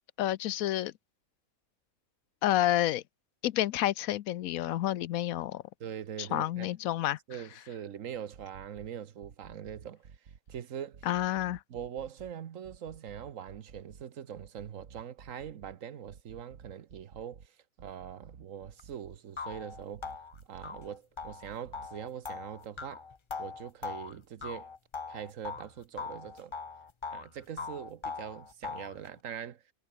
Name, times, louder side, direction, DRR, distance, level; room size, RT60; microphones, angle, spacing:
voice 1, 0.2-0.9 2.4-3.0 3.4-5.6 6.2-7.2 11.0-11.6, left 13 dB, 80° left, 1.1 m, -29 dB
voice 2, 5.8-6.7 7.3-10.1 10.5-11.1 11.7-20.1 20.5-23.0 23.4-24.7 25.1-26.5 27.1-29.6, right 9 dB, 70° right, 1.3 m, -42 dB
sound 1, 8.3-8.9 9.2-10.6 10.9-12.3 12.6-14.0 14.4-15.7 16.1-17.5 17.8-19.2 19.5-20.9 21.2-21.9, right 6 dB, 85° right, 2.1 m, -53 dB
sound 2, 18.8-18.9 19.4-25.7 26.0-27.3 27.6-29.0, left 5 dB, 30° left, 0.5 m, -41 dB
omnidirectional pair, 1.5 m